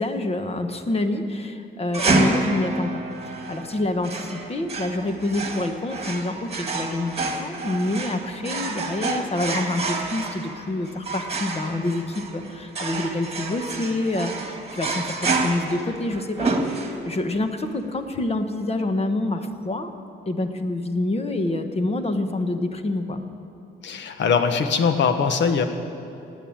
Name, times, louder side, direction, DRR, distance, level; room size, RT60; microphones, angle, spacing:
voice 1, 0.0-19.9 20.3-23.2, left 2 dB, 30° left, 7 dB, 1.3 m, -27 dB
sound 1, 1.9-17.3, right 3 dB, 30° right, 2.0 m, -29 dB
voice 2, 23.8-25.7, left 6 dB, 65° left, 8 dB, 1.3 m, -21 dB
17.0 x 9.4 x 8.9 m, 2.7 s
cardioid pair, 90°, 20 cm